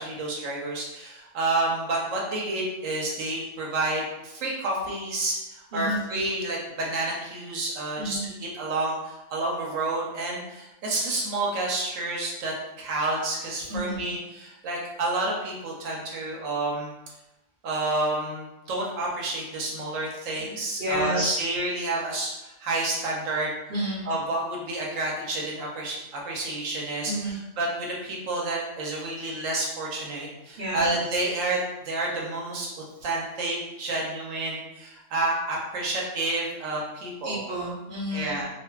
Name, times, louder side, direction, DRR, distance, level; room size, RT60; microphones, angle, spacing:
voice 1, 0.0-16.9 17.6-23.5 24.0-37.4 38.1-38.5, right 2 dB, 85° right, -2 dB, 1.1 m, -29 dB
voice 2, 5.7-6.0 8.0-8.3 13.7-14.0 20.8-21.5 23.7-24.0 27.1-27.4 30.6-30.9 37.2-38.3, right 1 dB, 45° right, -8 dB, 0.9 m, -29 dB
2.5 x 2.4 x 2.2 m, 0.96 s
omnidirectional pair, 1.3 m